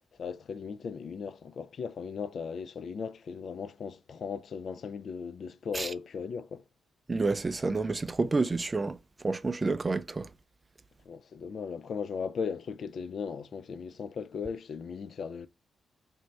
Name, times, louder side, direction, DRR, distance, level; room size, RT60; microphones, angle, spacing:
voice 1, 0.2-6.6 11.1-15.5, left 6 dB, 60° left, 0.3 m, -37 dB
voice 2, 7.1-9.0 9.2-10.3, right 3 dB, 25° right, 0.3 m, -29 dB
4.3 x 2.6 x 3.2 m
cardioid pair, 95°, 0 cm